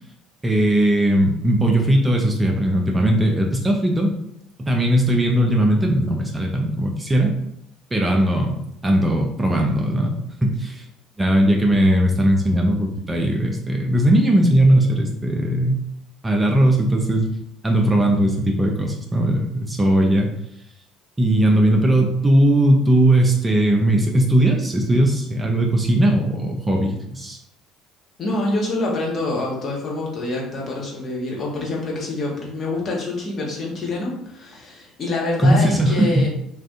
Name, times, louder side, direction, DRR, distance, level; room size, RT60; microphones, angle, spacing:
voice 1, 0.4-4.1 4.6-7.3 7.9-10.8 11.2-15.8 16.2-17.3 17.6-20.3 21.2-27.4 35.4-36.3, right 1 dB, 20° right, 1 dB, 0.6 m, -18 dB
voice 2, 28.2-36.3, left 2 dB, 40° left, -3 dB, 1.1 m, -26 dB
2.5 x 2.4 x 3.6 m, 0.77 s
hypercardioid pair, 60°, 0 cm